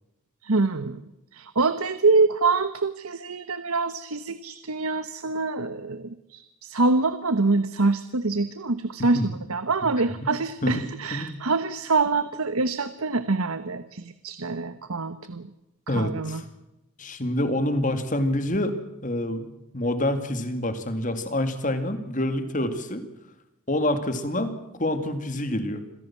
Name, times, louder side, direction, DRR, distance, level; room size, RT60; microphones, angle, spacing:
voice 1, 0.4-1.0 1.3-9.2 9.5-15.5 15.9-16.4, right 3 dB, 85° right, 12 dB, 1.1 m, -25 dB
voice 2, 10.6-11.4 15.9-16.4 17.0-18.8 19.0-19.5 19.7-23.0 23.7-24.5 24.8-25.8, left 1 dB, 35° left, 9 dB, 2.4 m, -27 dB
27.0 x 16.5 x 7.4 m, 0.94 s
head